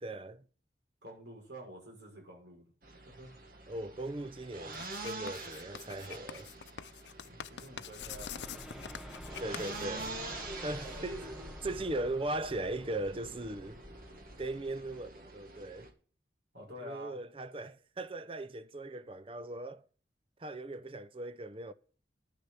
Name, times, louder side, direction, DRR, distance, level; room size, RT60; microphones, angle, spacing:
voice 1, 0.0-0.4 3.7-6.5 9.4-10.2 10.6-13.8 14.4-15.9 16.8-19.9 20.4-21.7, right 2 dB, 30° right, 0.6 m, -39 dB
voice 2, 1.0-2.6 3.1-3.3 7.2-8.6 11.1-11.2 11.6-11.8 16.5-17.2, equal, 85° right, 6.3 m, -49 dB
sound 1, 2.8-15.9, right 2 dB, 50° right, 1.8 m, -46 dB
Writing, 4.7-10.6, left 8 dB, 80° left, 0.6 m, -46 dB
sound 2, 8.0-15.1, equal, 5° right, 1.1 m, -49 dB
10.0 x 6.6 x 7.9 m
head